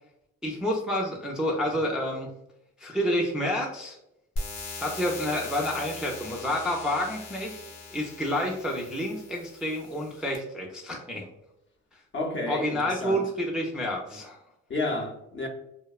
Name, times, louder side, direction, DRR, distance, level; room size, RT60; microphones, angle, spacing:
voice 1, 0.4-2.3 2.8-4.0 4.8-7.6 7.9-11.3 12.5-14.4, equal, 5° right, 0.3 m, -29 dB
sound 1, 4.4-10.4, left 2 dB, 75° left, 0.8 m, -40 dB
voice 2, 12.1-13.3 14.7-15.5, left 2 dB, 40° left, 0.6 m, -31 dB
2.7 x 2.1 x 2.3 m
cardioid pair, 90°, 30 cm